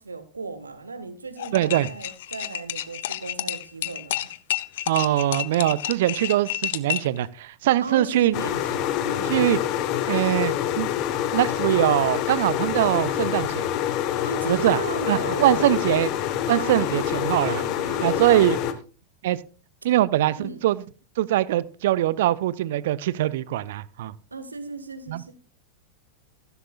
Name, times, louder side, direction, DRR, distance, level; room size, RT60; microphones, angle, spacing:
voice 1, 0.0-4.3 7.8-9.5 14.2-15.8 16.6-18.6 20.4-20.6 24.3-25.3, right 3 dB, 75° right, 1.4 m, -36 dB
sound 1, 1.4-7.2, left 13 dB, 55° left, 0.6 m, -30 dB
voice 2, 1.5-1.9 4.9-8.4 9.3-9.6 10.1-10.9 11.3-13.7 14.4-14.8 15.1-16.1 16.5-17.6 18.0-18.6 19.2-19.4 19.8-20.8 21.2-24.1 25.1-25.2, right 14 dB, 55° right, 0.6 m, -22 dB
sound 2, 8.3-18.7, left 11 dB, 40° left, 1.3 m, -26 dB
15.0 x 12.5 x 2.4 m
figure-of-eight pair, 90°, 0 cm